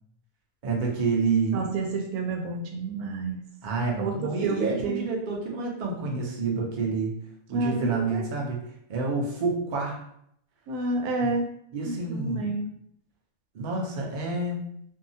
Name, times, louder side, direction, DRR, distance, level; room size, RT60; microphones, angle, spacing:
voice 1, 0.6-1.7 3.6-7.1 7.5-10.0 11.2-11.3 11.7-12.5 13.5-14.7, right 4 dB, 50° right, -1 dB, 0.5 m, -28 dB
voice 2, 1.5-3.4 4.0-5.0 7.5-8.2 10.7-11.5 11.8-12.6, right 3 dB, 90° right, 2 dB, 1.1 m, -29 dB
2.7 x 2.3 x 2.6 m, 0.71 s
omnidirectional pair, 1.5 m